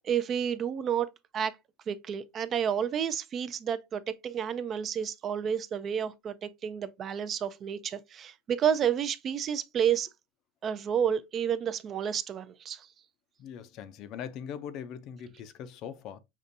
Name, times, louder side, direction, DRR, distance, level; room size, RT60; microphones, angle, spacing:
voice 1, 0.0-1.1 1.3-1.6 1.9-10.1 10.6-12.9, right 8 dB, 30° right, 0.3 m, -30 dB
voice 2, 13.4-16.2, left 8 dB, 45° left, 0.4 m, -41 dB
5.2 x 2.5 x 2.5 m
supercardioid pair, 140°, 0 cm